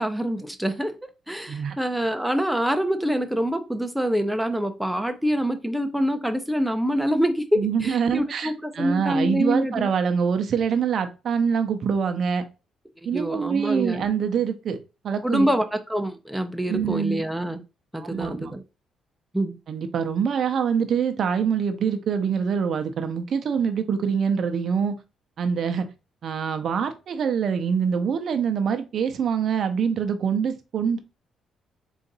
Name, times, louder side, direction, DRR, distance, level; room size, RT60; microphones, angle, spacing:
voice 1, 0.0-9.9 13.1-14.0 15.2-17.6 17.9-18.6 19.3-19.6, equal, 5° right, 0.5 m, -25 dB
voice 2, 7.6-12.4 13.0-14.8 15.0-15.5 16.7-17.2 18.0-18.6 19.7-24.9 25.4-25.9 26.2-31.0, right 7 dB, 60° right, 0.6 m, -25 dB
3.9 x 2.5 x 3.9 m
cardioid pair, 90°, 0 cm